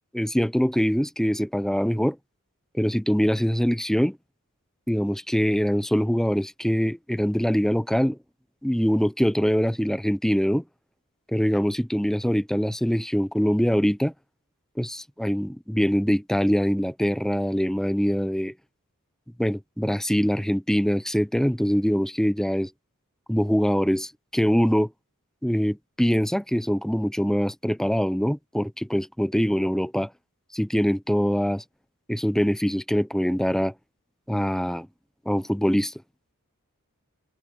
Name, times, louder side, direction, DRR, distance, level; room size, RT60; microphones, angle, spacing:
voice 1, 0.1-2.2 2.7-4.2 4.9-8.2 8.6-10.6 11.3-14.1 14.8-18.5 19.4-22.7 23.3-24.9 25.4-30.1 30.5-31.6 32.1-33.7 34.3-34.9 35.3-35.9, equal, ahead, 0.7 m, -23 dB
head